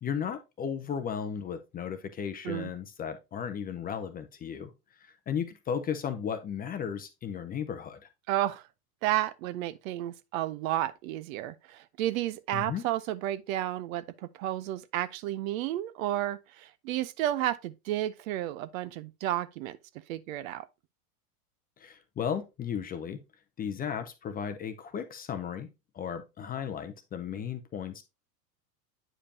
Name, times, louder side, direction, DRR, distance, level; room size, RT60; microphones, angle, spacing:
voice 1, 0.0-4.7 5.0-8.0 12.5-12.8 21.8-23.2 23.6-25.7 25.9-28.0, left 7 dB, 20° left, 0.5 m, -35 dB
voice 2, 8.3-8.6 9.0-19.8 20.1-20.7, right 13 dB, 55° right, 0.6 m, -32 dB
8.8 x 5.0 x 2.7 m
hypercardioid pair, 105°, 48 cm